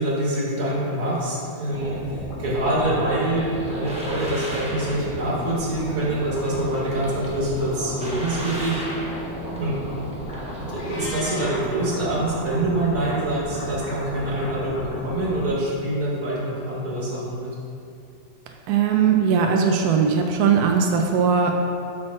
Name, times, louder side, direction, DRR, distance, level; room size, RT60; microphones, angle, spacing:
voice 1, 0.0-8.9 9.6-9.8 10.7-17.5, right 1 dB, 55° right, -5 dB, 1.9 m, -25 dB
sound 1, 1.7-15.5, equal, 45° left, 1.7 m, -34 dB
sound 2, 3.1-11.0, equal, 5° right, 0.5 m, -38 dB
Meow, 10.8-11.6, left 2 dB, 75° left, 1.8 m, -35 dB
voice 2, 18.7-21.5, right 6 dB, 75° right, 2 dB, 0.9 m, -20 dB
8.5 x 6.1 x 3.1 m, 2.5 s
omnidirectional pair, 2.1 m